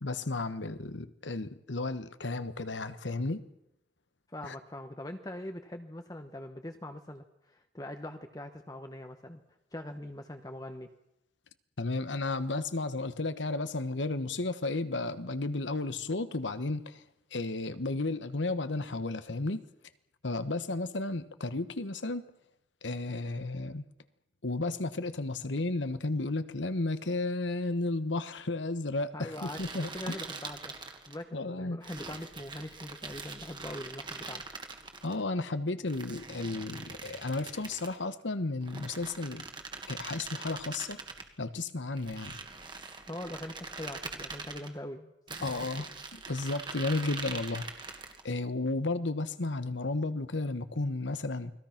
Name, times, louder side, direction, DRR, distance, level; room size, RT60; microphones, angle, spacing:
voice 1, 0.0-3.4 4.4-4.5 11.8-17.0 17.3-19.6 20.2-22.2 22.8-23.8 24.4-30.2 31.3-31.8 35.0-39.5 39.9-41.0 41.4-42.4 45.4-45.9 46.3-47.7 48.2-51.5, left 2 dB, 85° left, 12 dB, 1.2 m, -33 dB
voice 2, 4.3-9.4 9.7-10.9 29.1-30.7 31.1-34.4 43.1-45.5, left 1 dB, 20° left, 6 dB, 1.0 m, -42 dB
sound 1, 29.3-31.2 31.8-35.1 35.9-38.0 38.6-41.3 42.0-44.7 45.3-48.3, right 4 dB, 25° right, 1.8 m, -43 dB
29.5 x 20.5 x 5.9 m, 0.86 s
head